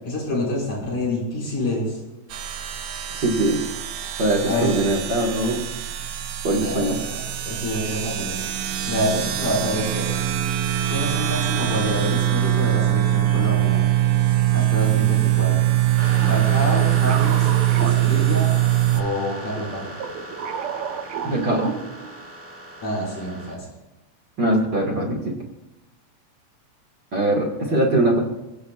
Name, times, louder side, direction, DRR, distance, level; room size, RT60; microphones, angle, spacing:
voice 1, 0.0-2.0 4.4-4.7 6.6-8.4 8.9-10.1 10.9-13.8 14.5-15.7 16.3-17.5 17.8-18.5 18.9-19.9 22.8-23.7, left 1 dB, 75° left, -4 dB, 7.0 m, -27 dB
sound 1, 2.3-19.0, right 13 dB, 85° right, 2.5 m, -22 dB
voice 2, 3.1-3.6 4.2-5.6 6.4-7.0 21.2-21.7 24.4-25.3 27.1-28.2, right 1 dB, 40° right, -1 dB, 2.2 m, -21 dB
sound 2, 16.0-23.5, right 1 dB, 5° right, 1.5 m, -36 dB
sound 3, 16.2-18.9 19.5-22.2, right 7 dB, 70° right, 2.2 m, -33 dB
27.5 x 17.0 x 2.4 m, 1.0 s
omnidirectional pair, 3.5 m